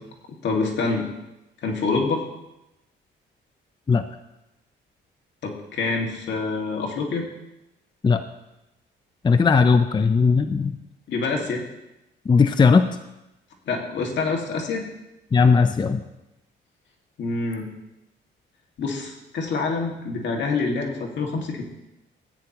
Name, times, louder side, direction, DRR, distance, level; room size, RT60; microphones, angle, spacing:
voice 1, 0.4-1.1 1.6-2.2 5.4-7.3 11.1-11.6 13.7-14.8 17.2-17.7 18.8-21.6, left 4 dB, 65° left, 0 dB, 2.1 m, -26 dB
voice 2, 9.2-10.7 12.3-12.8 15.3-16.0, left 5 dB, 25° left, 9 dB, 0.5 m, -17 dB
14.0 x 9.2 x 3.0 m, 0.95 s
cardioid pair, 90°, 20 cm